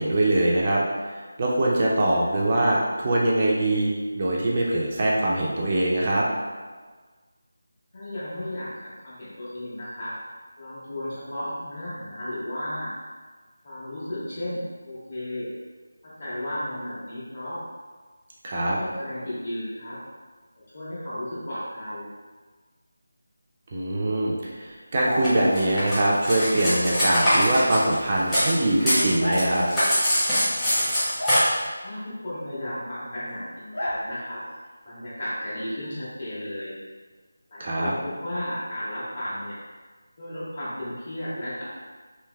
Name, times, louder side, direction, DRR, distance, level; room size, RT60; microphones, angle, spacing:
voice 1, 0.0-6.3 18.4-18.8 23.7-29.7 37.6-37.9, right 1 dB, 30° right, -4 dB, 0.4 m, -23 dB
voice 2, 7.9-10.2 10.6-12.9 13.6-15.5 16.0-17.6 18.5-20.0 20.7-22.1 31.8-34.4 34.8-36.8 37.5-39.6 40.2-41.6, left 1 dB, 45° left, -10 dB, 1.4 m, -34 dB
sound 1, 25.0-25.6 27.2-27.4 29.2-29.8 31.2-31.4 33.7-34.0, left 1 dB, 85° left, 0.6 m, -28 dB
Cutlery silverware, 25.2-28.5 28.8-31.4, equal, 10° left, 0.8 m, -23 dB
3.2 x 2.9 x 2.2 m, 1.4 s
figure-of-eight pair, 170°, 0 cm